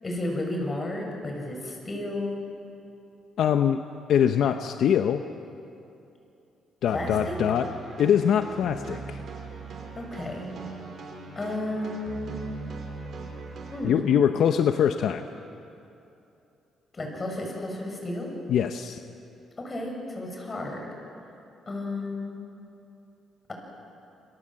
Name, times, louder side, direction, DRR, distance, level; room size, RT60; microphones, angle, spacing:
voice 1, 0.0-2.4 6.9-7.4 9.9-10.5 11.4-12.4 13.7-14.2 16.9-18.3 19.6-20.9 21.7-22.4, left 1 dB, 30° left, 2 dB, 7.2 m, -32 dB
voice 2, 3.4-3.8 4.1-5.2 6.8-7.7 8.0-9.2 13.8-15.2 18.5-19.0, left 8 dB, 70° left, 8 dB, 0.9 m, -23 dB
sound 1, 6.9-13.8, right 4 dB, 55° right, 5.5 m, -39 dB
28.0 x 23.5 x 7.7 m, 2.7 s
cardioid pair, 90°, 0 cm